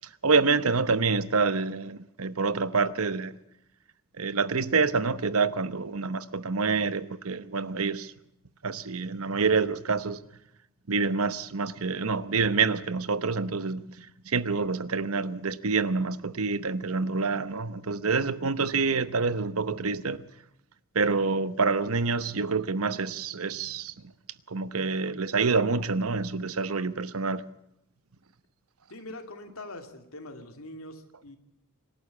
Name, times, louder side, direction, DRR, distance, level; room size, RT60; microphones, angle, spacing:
voice 1, 0.2-3.3 4.2-8.1 8.6-10.2 10.9-20.2 20.9-23.9 24.5-27.4, right 4 dB, 80° right, 1.0 m, -27 dB
voice 2, 28.9-31.4, left 1 dB, 75° left, 2.6 m, -43 dB
26.0 x 12.0 x 8.3 m
head